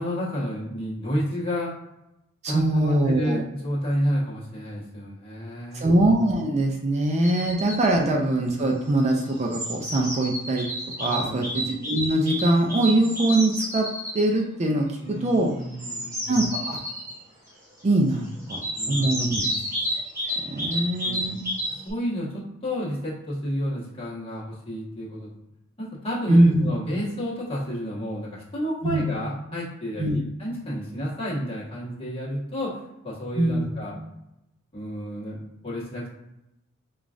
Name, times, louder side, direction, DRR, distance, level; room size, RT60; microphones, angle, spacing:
voice 1, 0.0-1.7 2.5-5.9 11.0-11.4 15.0-16.2 18.7-19.6 20.7-21.2 21.8-25.3 25.8-33.9 34.7-36.1, equal, 25° left, -7 dB, 1.3 m, -31 dB
voice 2, 2.4-3.4 5.7-10.7 11.0-13.9 14.1-15.5 16.3-16.8 17.8-18.6 18.9-19.4 20.5-21.5 26.3-26.7 28.8-29.1 30.0-30.2 33.4-33.7, right 1 dB, 30° right, 1 dB, 0.4 m, -22 dB
sound 1, 7.2-7.9 9.0-14.3 15.6-17.1 18.5-21.9, equal, 15° right, 1.2 m, -30 dB
4.9 x 2.4 x 2.5 m, 0.90 s
head